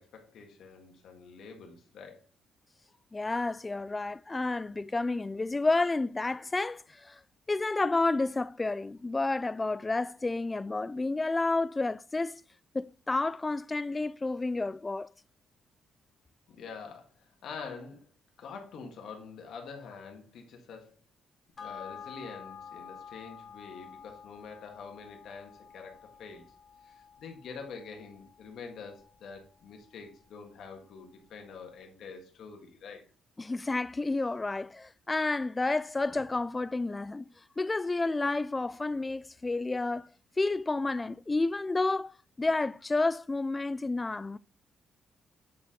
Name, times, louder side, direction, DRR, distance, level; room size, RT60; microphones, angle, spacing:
voice 1, 0.0-2.2 16.5-17.1 17.4-18.1 18.4-20.9 21.6-26.5 26.8-33.0, left 5 dB, 70° left, 1.7 m, -46 dB
voice 2, 3.1-7.2 7.5-12.4 12.7-15.1 33.4-37.3 37.6-40.1 40.4-44.4, left 3 dB, 20° left, 0.3 m, -30 dB
sound 1, 21.6-30.3 30.7-30.8, left 7 dB, 45° left, 1.1 m, -50 dB
8.4 x 4.2 x 3.8 m
cardioid pair, 90°, 0 cm